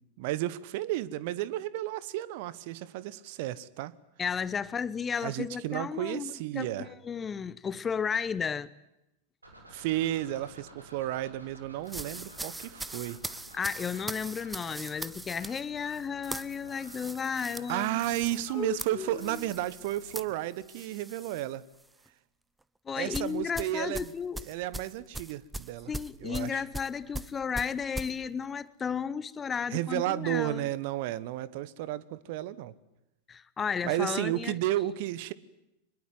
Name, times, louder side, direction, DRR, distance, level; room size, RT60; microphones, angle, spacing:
voice 1, 0.2-3.9 5.2-6.9 9.7-13.2 17.3-21.6 23.0-24.1 24.5-25.9 26.2-26.6 29.7-32.7 33.8-35.3, right 14 dB, 50° right, 1.2 m, -32 dB
voice 2, 4.2-8.7 13.5-18.0 18.5-19.4 22.9-24.4 25.9-30.7 33.3-34.6, left 6 dB, 20° left, 1.0 m, -33 dB
sound 1, 9.4-20.3, right 1 dB, 80° right, 7.0 m, -53 dB
sound 2, 11.9-21.5 21.8-22.1 23.1-28.1, right 2 dB, 5° right, 0.9 m, -41 dB
24.5 x 21.5 x 9.5 m
figure-of-eight pair, 90°, 0 cm